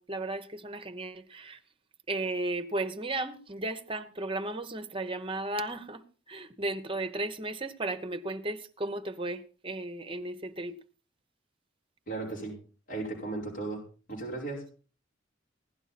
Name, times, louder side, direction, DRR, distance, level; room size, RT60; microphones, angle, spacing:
voice 1, 0.0-1.6 2.1-6.0 6.3-10.7, right 2 dB, 30° right, 1.0 m, -35 dB
voice 2, 12.1-12.6 12.9-13.8 14.1-14.6, right 3 dB, 45° left, 5.0 m, -35 dB
16.5 x 11.0 x 4.2 m
head